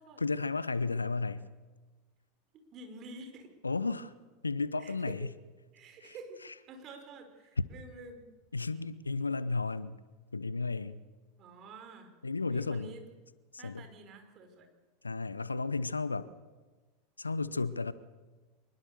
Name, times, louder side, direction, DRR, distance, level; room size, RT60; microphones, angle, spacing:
voice 1, 0.2-1.5 3.6-4.1 4.4-5.3 6.0-6.1 6.4-6.5 7.6-7.7 8.5-10.0 10.3-11.0 12.2-12.9 13.5-13.9 15.0-16.3 17.2-17.9, left 3 dB, 85° left, 0.9 m, -33 dB
voice 2, 2.5-3.5 4.8-5.3 5.7-8.3 11.4-12.1 12.5-13.1 13.6-14.7, right 3 dB, 35° right, 5.2 m, -49 dB
25.0 x 22.0 x 6.9 m
figure-of-eight pair, 85°, 0 cm